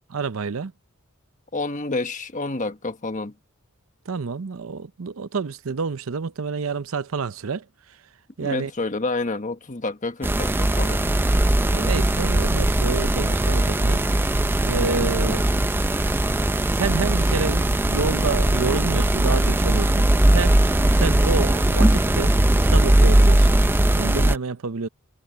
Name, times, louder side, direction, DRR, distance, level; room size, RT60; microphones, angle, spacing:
voice 1, 0.1-0.7 4.1-8.0 8.4-8.7 11.7-14.1 14.6-15.5 16.3-20.6 21.0-22.4 22.7-23.5 24.0-24.9, right 4 dB, 70° right, 0.6 m, -28 dB
voice 2, 1.5-3.3 8.4-11.1, left 3 dB, 35° left, 1.3 m, -29 dB
sound 1, 10.2-24.4, right 1 dB, 10° right, 0.4 m, -19 dB
head